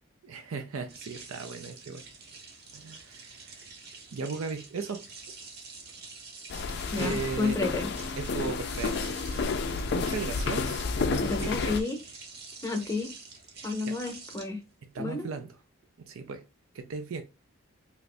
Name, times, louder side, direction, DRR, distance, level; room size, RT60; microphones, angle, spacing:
voice 1, 0.2-2.0 2.7-3.7 4.1-5.7 7.0-7.6 8.2-9.3 9.7-11.7 13.6-14.0 14.9-15.6 16.0-16.4 16.7-17.2, right 4 dB, 80° right, 0.4 m, -37 dB
sound 1, 0.9-15.4, right 4 dB, 50° right, 0.7 m, -48 dB
sound 2, 6.5-11.8, left 4 dB, 50° left, 0.3 m, -30 dB
voice 2, 6.9-7.9 11.2-12.0 12.6-13.1 13.6-14.6 15.0-15.3, left 3 dB, 15° left, 0.7 m, -31 dB
2.9 x 2.6 x 3.2 m
head